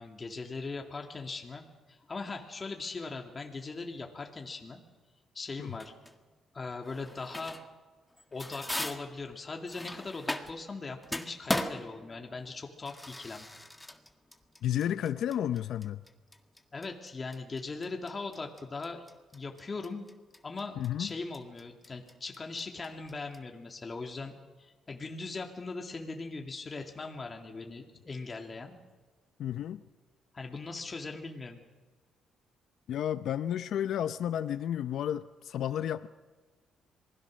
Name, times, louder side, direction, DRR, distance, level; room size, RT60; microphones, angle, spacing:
voice 1, 0.0-4.8 5.3-5.9 6.5-7.6 8.3-13.5 16.7-19.0 19.3-20.0 20.4-28.8 30.3-31.6, left 3 dB, 30° left, 2 dB, 2.4 m, -40 dB
sound 1, 5.8-6.2 6.9-7.8 8.1-10.7 11.0-23.4, left 1 dB, 10° left, 1.8 m, -39 dB
voice 2, 14.6-16.0 20.8-21.1 29.4-29.8 32.9-36.1, left 10 dB, 75° left, 12 dB, 0.7 m, -32 dB
26.5 x 20.5 x 6.4 m, 1.3 s
cardioid pair, 90°, 0 cm